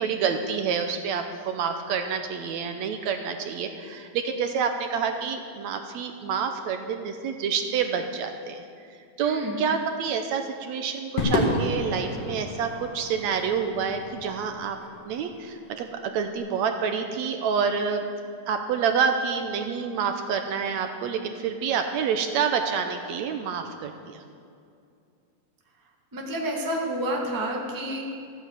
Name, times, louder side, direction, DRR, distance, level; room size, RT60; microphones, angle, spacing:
voice 1, 0.0-8.6 9.2-14.8 15.1-18.0 18.5-24.2, right 6 dB, 75° right, 6 dB, 1.9 m, -28 dB
voice 2, 9.2-9.6 26.1-28.0, right 1 dB, 10° right, -1 dB, 1.1 m, -29 dB
Crowd / Fireworks, 11.2-15.7, left 1 dB, 85° left, 3.5 m, -30 dB
14.5 x 9.1 x 8.2 m, 2.5 s
omnidirectional pair, 3.5 m